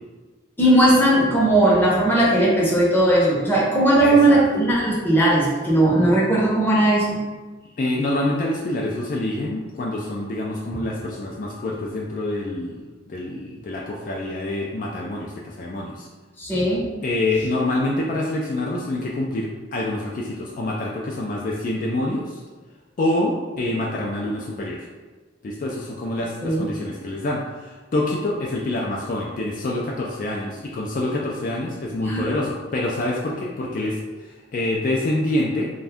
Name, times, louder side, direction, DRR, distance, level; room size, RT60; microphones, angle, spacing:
voice 1, 0.6-7.1 16.4-16.9 26.4-26.6 32.0-32.3, right 1 dB, 10° left, -6 dB, 0.7 m, -18 dB
voice 2, 4.0-4.4 7.8-12.8 13.1-16.1 17.0-22.3 23.0-24.9 25.4-34.0 34.5-35.7, left 1 dB, 50° left, -2 dB, 0.3 m, -26 dB
2.5 x 2.2 x 3.4 m, 1.3 s
head